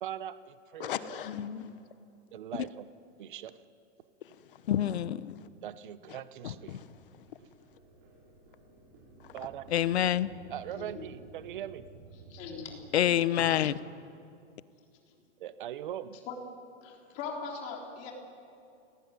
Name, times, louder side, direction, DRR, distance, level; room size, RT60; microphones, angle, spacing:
voice 1, 0.0-1.2 2.3-2.9 3.2-3.6 5.6-6.8 9.3-9.7 10.5-11.9 15.4-16.2, right 10 dB, 45° right, 1.0 m, -41 dB
voice 2, 0.8-1.8 4.2-4.8 5.3-5.5 6.1-7.3 9.2-9.5, left 10 dB, 50° left, 1.3 m, -39 dB
voice 3, 4.7-5.3 9.7-10.3 12.9-13.7, left 11 dB, 65° left, 1.0 m, -26 dB
sound 1, 6.6-12.8, right 5 dB, 30° right, 5.1 m, -54 dB
voice 4, 12.3-13.1 16.3-16.4 16.8-18.1, left 5 dB, 25° left, 3.7 m, -40 dB
29.0 x 19.0 x 9.6 m
supercardioid pair, 180°, 35 cm